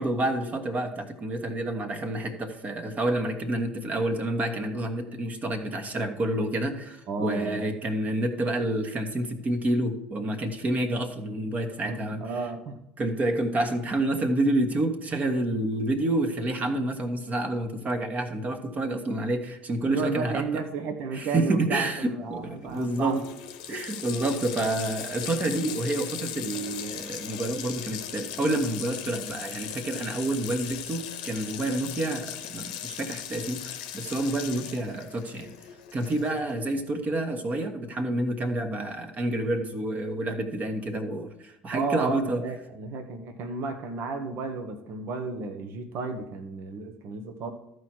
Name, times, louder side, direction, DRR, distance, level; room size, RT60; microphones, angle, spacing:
voice 1, 0.0-12.2 13.0-20.4 21.1-23.2 23.7-35.5 35.9-42.4, right 1 dB, 35° right, 6 dB, 1.5 m, -28 dB
voice 2, 7.1-7.6 11.8-12.9 19.8-23.2 41.7-47.5, right 4 dB, 55° right, 8 dB, 1.1 m, -33 dB
Water tap faucet, 22.4-22.5 22.7-36.5, left 10 dB, 75° left, 0.9 m, -38 dB
13.5 x 4.8 x 4.6 m, 0.88 s
hypercardioid pair, 65°, 5 cm